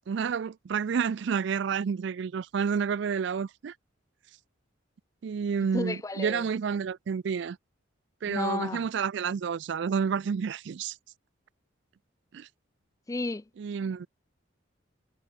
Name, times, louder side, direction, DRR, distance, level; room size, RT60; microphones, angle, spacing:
voice 1, 0.0-3.7 5.2-7.6 8.2-11.0 12.3-12.5 13.6-14.1, right 6 dB, 60° right, 0.3 m, -30 dB
voice 2, 5.7-6.5 8.3-8.9 13.1-13.5, left 2 dB, 15° left, 0.4 m, -32 dB
head